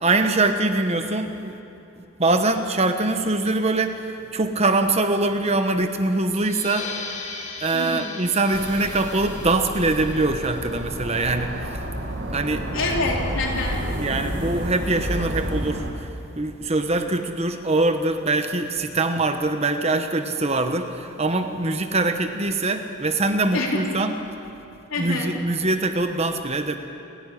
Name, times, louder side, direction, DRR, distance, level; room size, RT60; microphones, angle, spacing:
voice 1, 0.0-1.6 2.2-6.9 7.6-11.8 12.3-12.7 14.0-24.1 25.0-26.8, right 2 dB, 30° right, 7 dB, 1.1 m, -23 dB
sound 1, 6.3-11.5, left 4 dB, 35° left, 2.8 m, -38 dB
voice 2, 7.7-8.1 12.7-13.8 23.5-23.8 24.9-25.3, left 2 dB, 65° left, -1 dB, 3.9 m, -26 dB
sound 2, 8.5-15.9, right 1 dB, 55° right, 2.2 m, -30 dB
29.0 x 11.0 x 10.0 m, 2.8 s
head